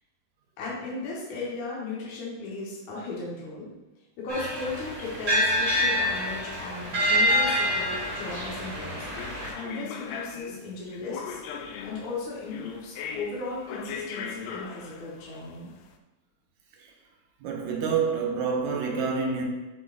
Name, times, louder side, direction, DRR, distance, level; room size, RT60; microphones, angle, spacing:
voice 1, 0.6-3.7 4.2-9.1 9.5-11.4 11.8-15.7, left 3 dB, 65° left, -6 dB, 2.4 m, -36 dB
sound 1, 4.3-9.5, equal, 30° right, 1.4 m, -26 dB
sound 2, 9.1-15.8, left 6 dB, 85° left, 2.1 m, -39 dB
voice 2, 17.4-19.4, right 5 dB, 70° right, 0 dB, 2.2 m, -27 dB
6.8 x 6.2 x 2.5 m, 1.2 s
omnidirectional pair, 3.7 m